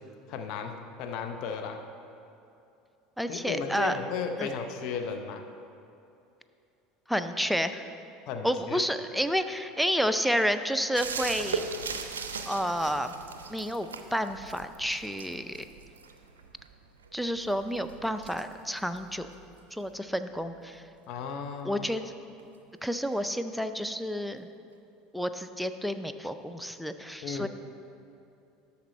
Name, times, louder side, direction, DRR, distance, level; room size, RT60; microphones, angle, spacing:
voice 1, 0.3-1.8 3.3-5.4 8.3-8.8 21.1-21.8 27.2-27.5, left 5 dB, 60° left, 5 dB, 0.6 m, -35 dB
voice 2, 3.2-4.0 4.4-4.5 7.1-7.9 8.4-11.6 12.5-13.1 13.5-15.6 17.1-19.3 19.7-20.9 21.6-22.0 22.8-24.5 25.1-27.5, equal, ahead, 9 dB, 0.4 m, -30 dB
sound 1, 10.9-20.3 22.4-22.5, right 5 dB, 85° right, 0.4 m, -39 dB
12.5 x 4.2 x 4.2 m, 2.7 s
hypercardioid pair, 75°, 0 cm